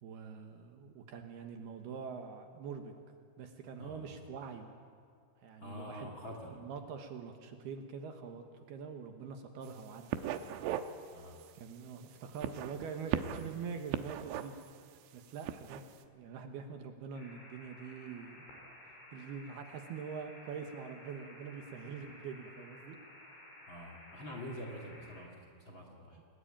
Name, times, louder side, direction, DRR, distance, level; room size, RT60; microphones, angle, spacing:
voice 1, 0.0-2.9 3.4-4.7 5.4-6.1 6.6-10.2 11.5-14.5 15.1-15.8 16.1-18.5 19.1-23.0 26.2-26.3, right 6 dB, 65° right, 5 dB, 3.0 m, -44 dB
voice 2, 5.6-6.5 11.1-11.4 23.7-26.2, equal, 35° left, 1 dB, 2.4 m, -46 dB
sound 1, 9.6-9.8 10.1-10.9 11.3-11.5 12.3-13.5 13.9-14.7 15.3-15.8, right 11 dB, 85° right, 3.3 m, -37 dB
sound 2, 17.1-25.2, left 1 dB, 75° left, 8.6 m, -54 dB
29.5 x 20.5 x 8.9 m, 2.2 s
omnidirectional pair, 5.4 m